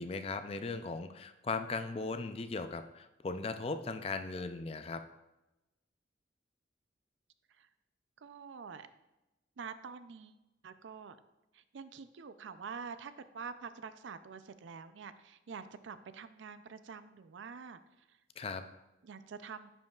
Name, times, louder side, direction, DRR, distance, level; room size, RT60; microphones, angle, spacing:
voice 1, 0.0-5.0 18.4-18.6, left 4 dB, 30° left, 9 dB, 0.4 m, -38 dB
voice 2, 8.2-8.9 9.6-11.2 11.5-18.2 19.0-19.7, right 5 dB, 85° right, 12 dB, 0.4 m, -47 dB
10.5 x 5.3 x 2.3 m, 0.97 s
head